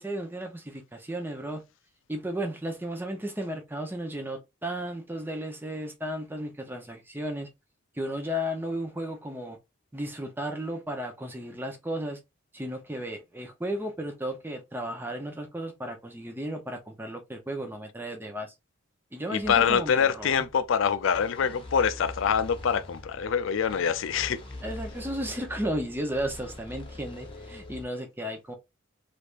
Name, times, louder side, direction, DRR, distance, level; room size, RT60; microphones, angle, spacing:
voice 1, 0.0-1.6 2.1-7.5 7.9-9.6 9.9-12.2 12.5-18.5 19.1-20.4 24.6-28.5, equal, 10° right, 0.7 m, -34 dB
voice 2, 19.3-24.4, left 7 dB, 70° left, 0.4 m, -25 dB
sound 1, 19.4-27.8, left 2 dB, 25° left, 1.1 m, -44 dB
3.3 x 3.3 x 2.5 m
head